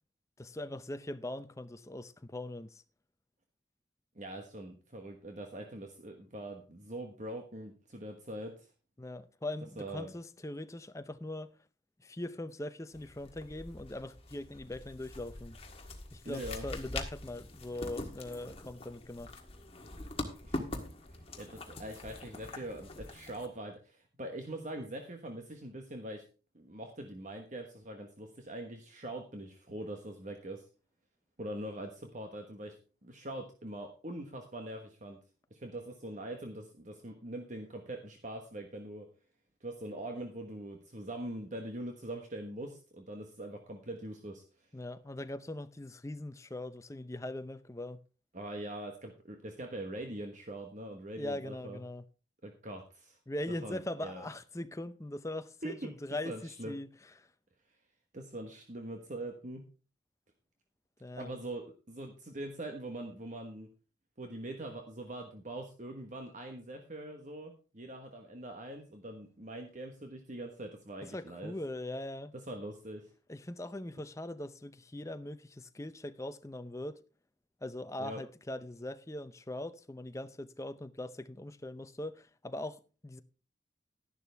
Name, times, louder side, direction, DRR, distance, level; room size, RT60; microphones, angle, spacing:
voice 1, 0.4-2.8 9.0-11.5 12.0-15.6 16.1-19.3 44.7-48.0 51.2-52.0 53.3-56.9 57.2-57.3 61.0-61.4 71.1-72.3 73.3-77.0 77.6-83.2, left 1 dB, 15° left, 0.6 m, -41 dB
voice 2, 4.1-8.7 9.8-10.1 16.2-16.7 20.4-20.7 21.1-26.2 26.5-30.6 31.4-32.8 33.0-35.2 35.5-39.1 39.6-44.4 48.3-51.8 52.4-53.2 53.6-54.2 55.6-55.9 56.2-56.8 58.1-59.6 61.2-63.7 64.2-71.5 72.5-73.1 78.0-78.2, right 1 dB, 40° right, 1.3 m, -43 dB
sound 1, 12.9-23.5, left 2 dB, 30° left, 1.6 m, -44 dB
12.0 x 11.0 x 3.5 m
head